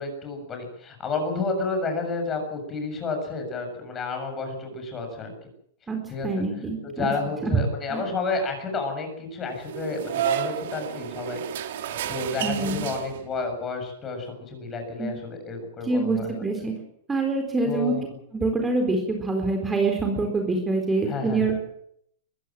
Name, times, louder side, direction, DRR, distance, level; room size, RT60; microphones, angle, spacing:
voice 1, 0.0-5.3 6.1-6.3 6.8-11.4 11.8-16.3 17.6-18.1 21.1-21.5, left 3 dB, 20° left, 5 dB, 7.2 m, -31 dB
voice 2, 5.9-7.1 7.4-7.6 7.9-8.0 12.4-12.8 15.0-15.1 15.8-16.7 17.1-17.9 18.3-21.5, right 3 dB, 10° right, 3 dB, 4.2 m, -25 dB
sound 1, 9.6-13.5, right 11 dB, 70° right, 3.1 m, -31 dB
23.0 x 15.5 x 7.6 m, 0.69 s
hypercardioid pair, 140°, 0 cm